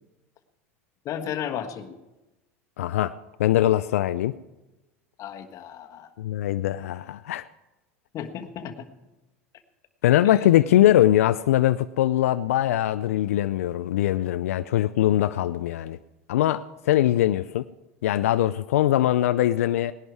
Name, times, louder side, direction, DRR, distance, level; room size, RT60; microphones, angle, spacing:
voice 1, 1.0-2.0 5.2-6.1 8.1-8.9, left 9 dB, 45° left, 7 dB, 1.4 m, -34 dB
voice 2, 2.8-4.4 6.2-7.5 10.0-16.0 16.3-17.7 18.0-19.9, left 13 dB, 80° left, 13 dB, 0.4 m, -22 dB
18.5 x 11.0 x 4.7 m, 1.0 s
hypercardioid pair, 90°, 8 cm